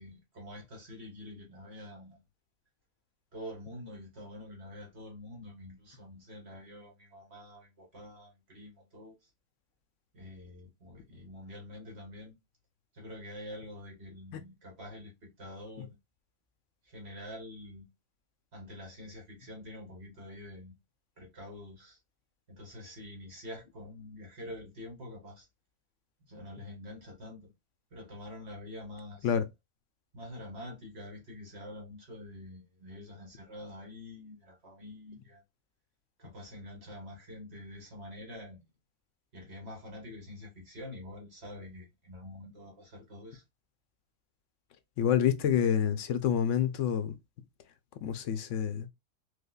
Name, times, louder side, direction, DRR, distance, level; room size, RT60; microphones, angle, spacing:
voice 1, 0.0-2.2 3.3-9.3 10.1-12.4 12.9-15.9 16.8-17.9 18.5-20.7 21.2-22.0 22.5-25.5 26.2-27.5 27.9-29.3 30.1-35.4 36.2-38.6 39.3-43.4, left 1 dB, 55° right, 1.4 m, -46 dB
voice 2, 45.0-47.2 48.0-48.9, left 9 dB, 75° left, 0.9 m, -28 dB
4.9 x 2.1 x 2.3 m
omnidirectional pair, 1.3 m